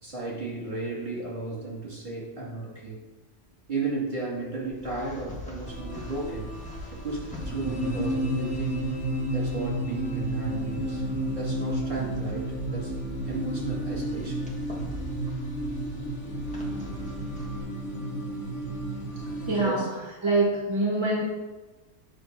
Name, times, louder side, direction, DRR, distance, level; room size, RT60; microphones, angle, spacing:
voice 1, 0.0-3.0 3.7-6.5 6.9-8.8 9.2-11.0 11.3-12.9 13.2-14.4 19.6-19.9, right 3 dB, 40° right, -6 dB, 2.3 m, -34 dB
sound 1, 4.6-17.6, left 1 dB, 5° left, 1.3 m, -42 dB
sound 2, 5.7-19.6, right 1 dB, 70° left, 1.4 m, -32 dB
voice 2, 19.5-19.8 20.2-21.2, right 2 dB, 25° right, -4 dB, 1.2 m, -24 dB
7.7 x 3.1 x 5.9 m, 1.2 s
omnidirectional pair, 1.3 m